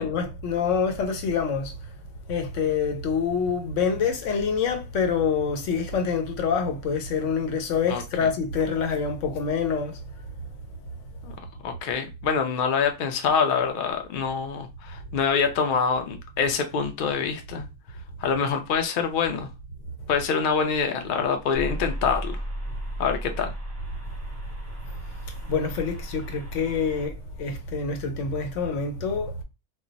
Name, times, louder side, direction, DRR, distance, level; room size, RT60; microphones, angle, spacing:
voice 1, 0.0-1.7 2.3-10.0 25.5-29.3, left 5 dB, 80° left, 1.0 m, -26 dB
voice 2, 7.9-8.3 11.2-11.3 11.6-17.7 18.2-19.5 20.1-22.4 23.0-23.5, left 6 dB, 60° left, 0.6 m, -25 dB
sound 1, 21.5-27.1, right 1 dB, 20° right, 0.5 m, -35 dB
2.3 x 2.0 x 3.8 m
omnidirectional pair, 1.3 m